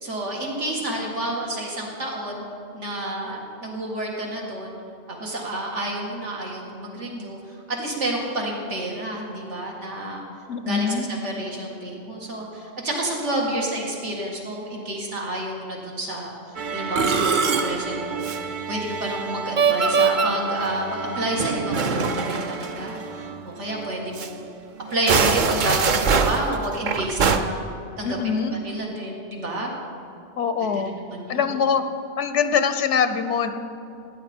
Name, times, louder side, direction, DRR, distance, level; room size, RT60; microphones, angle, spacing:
voice 1, 0.0-2.4 2.7-4.7 5.1-7.4 7.7-10.2 10.6-16.3 16.7-18.3 18.7-24.5 24.9-27.6 28.0-29.7 30.6-30.8 31.1-31.5, right 1 dB, 85° right, -2 dB, 2.2 m, -30 dB
voice 2, 10.5-11.1 28.0-28.6 30.4-30.9 31.3-31.8 32.2-33.5, left 6 dB, 85° left, 9 dB, 1.0 m, -23 dB
Musical instrument, 16.6-23.4 23.7-23.9 24.2-24.3 24.9-27.4, right 5 dB, 50° right, 0.7 m, -24 dB
16.0 x 9.7 x 4.4 m, 2.5 s
omnidirectional pair, 1.2 m